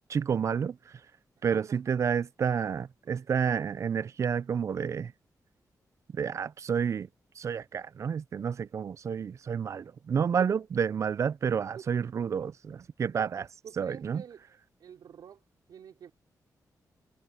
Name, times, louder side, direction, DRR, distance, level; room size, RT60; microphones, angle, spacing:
voice 1, 0.1-0.8 1.4-5.1 6.1-7.1 7.4-13.4 13.8-14.2, right 7 dB, 50° right, 0.4 m, -30 dB
voice 2, 1.5-1.8 3.0-3.3 10.4-10.5 11.7-11.9 13.2-14.4 14.8-15.4 15.7-16.1, right 8 dB, 85° right, 4.6 m, -47 dB
wide cardioid pair, 140°, 7 cm